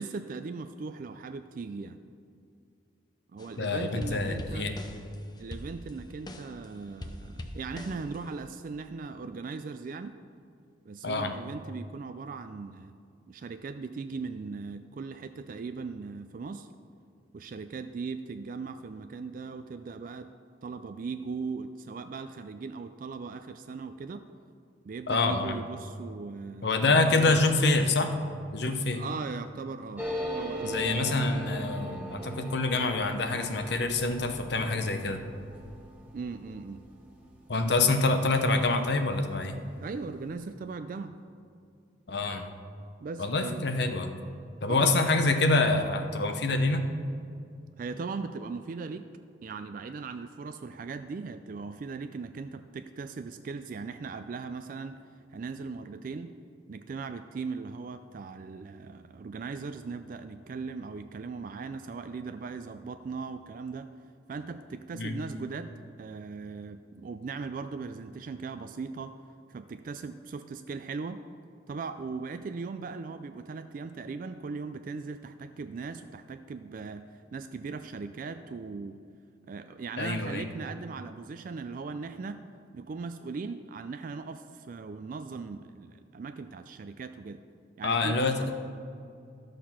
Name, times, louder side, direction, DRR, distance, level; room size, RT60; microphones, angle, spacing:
voice 1, 0.0-2.0 3.3-4.7 5.4-10.2 10.9-12.9 13.3-16.7 17.3-20.3 20.6-24.3 24.9-27.4 28.9-30.1 30.4-31.1 36.1-36.8 39.8-41.2 43.0-43.6 44.7-45.0 47.8-49.0 49.4-55.0 55.3-56.3 56.7-63.9 64.3-65.7 66.0-69.2 69.5-71.2 71.7-79.0 79.5-82.4 82.7-87.4 87.8-88.5, right 4 dB, 45° right, 9 dB, 0.3 m, -39 dB
sound 1, 3.4-3.7 4.0-6.7 7.0-8.4, left 1 dB, 20° left, 0.6 m, -42 dB
voice 2, 3.6-4.7 11.0-11.3 25.1-25.6 26.6-28.1 28.5-29.0 30.6-35.2 37.5-39.6 42.1-42.5 43.2-44.1 44.6-46.9 64.9-65.2 80.0-80.4 87.8-88.5, left 3 dB, 60° left, 6 dB, 0.8 m, -26 dB
sound 2, 30.0-39.1 39.4-39.5 39.7-40.3, right 1 dB, 10° right, 1.0 m, -40 dB
12.0 x 6.6 x 5.8 m, 2.4 s
head